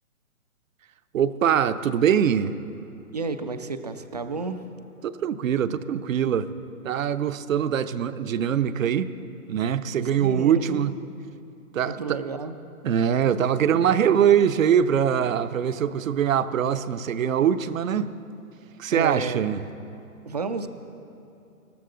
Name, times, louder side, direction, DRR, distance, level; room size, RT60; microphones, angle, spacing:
voice 1, 1.1-2.5 5.0-6.5 6.8-9.1 9.5-10.9 11.7-12.2 12.8-18.1 18.8-19.6, right 8 dB, 65° right, 13 dB, 0.7 m, -23 dB
voice 2, 3.1-4.6 10.2-10.9 11.8-12.5 18.9-19.5 20.3-20.7, right 4 dB, 30° right, 9 dB, 0.4 m, -31 dB
20.5 x 13.5 x 3.8 m, 2.8 s
hypercardioid pair, 150°, 44 cm